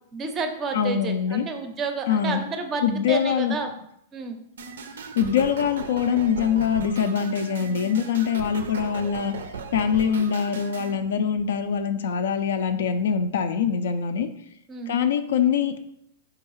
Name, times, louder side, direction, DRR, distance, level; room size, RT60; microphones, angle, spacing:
voice 1, 0.1-3.7 4.1-4.4 14.7-14.9, right 4 dB, 25° right, 6 dB, 0.4 m, -30 dB
voice 2, 0.7-1.4 2.1-2.4 2.8-3.6 5.1-9.3 9.7-14.3 14.9-15.8, left 7 dB, 80° left, 9 dB, 0.3 m, -23 dB
sound 1, 4.6-10.9, right 4 dB, 90° right, 0.4 m, -37 dB
4.5 x 2.3 x 3.0 m, 0.74 s
hypercardioid pair, 145°, 0 cm